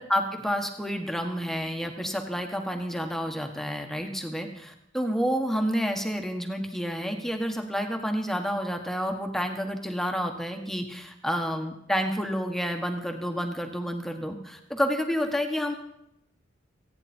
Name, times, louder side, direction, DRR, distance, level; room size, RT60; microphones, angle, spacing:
voice 1, 0.0-15.7, equal, ahead, 4 dB, 1.4 m, -29 dB
29.5 x 9.9 x 4.4 m, 0.81 s
head